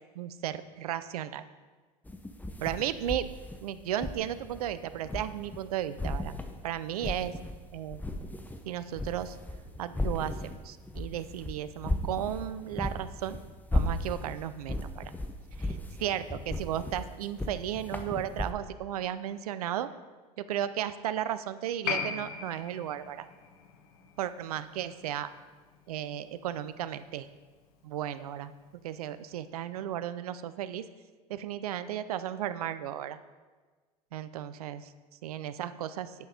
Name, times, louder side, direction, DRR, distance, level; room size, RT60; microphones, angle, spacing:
voice 1, 0.2-1.4 2.6-3.3 3.6-6.4 6.6-7.3 7.7-8.0 8.7-9.4 9.8-13.4 13.7-15.1 15.6-19.9 20.4-23.3 24.2-25.3 25.9-27.3 27.8-28.5 28.8-30.8 31.3-33.2 34.1-34.9 35.2-36.1, right 11 dB, 75° right, 13 dB, 0.5 m, -34 dB
sound 1, 2.1-5.7 6.0-7.6 7.9-18.5, left 1 dB, 10° left, 0.9 m, -35 dB
Piano, 21.8-28.8 29.1-29.2, left 6 dB, 70° left, 1.1 m, -40 dB
9.5 x 5.9 x 5.2 m, 1.4 s
hypercardioid pair, 70°, 19 cm